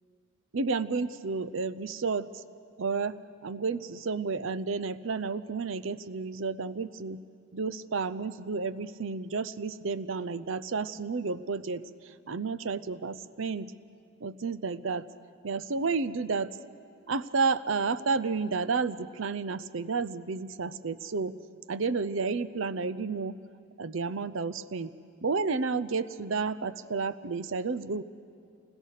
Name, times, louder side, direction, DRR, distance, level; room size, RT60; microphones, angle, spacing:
voice 1, 0.5-2.4 2.8-3.2 3.4-7.2 7.5-13.7 14.2-15.1 15.4-16.6 17.1-21.4 21.7-23.4 23.8-24.9 25.2-28.0, right 4 dB, 65° right, 14 dB, 0.6 m, -31 dB
29.0 x 21.0 x 6.6 m, 2.3 s
head